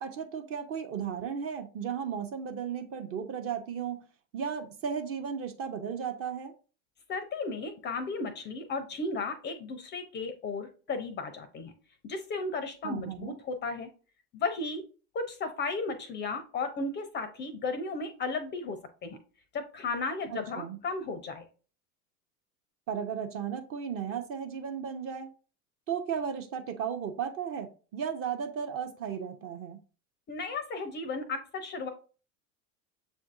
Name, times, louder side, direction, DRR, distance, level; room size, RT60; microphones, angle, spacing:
voice 1, 0.0-4.0 4.3-6.5 12.8-13.3 20.3-20.8 22.9-25.3 25.9-29.8, right 7 dB, 30° right, 0.5 m, -35 dB
voice 2, 7.1-11.7 12.0-13.9 14.3-14.8 15.1-19.2 19.5-21.5 30.3-31.9, left 3 dB, 25° left, 0.4 m, -34 dB
7.0 x 2.5 x 2.4 m
hypercardioid pair, 80°, 46 cm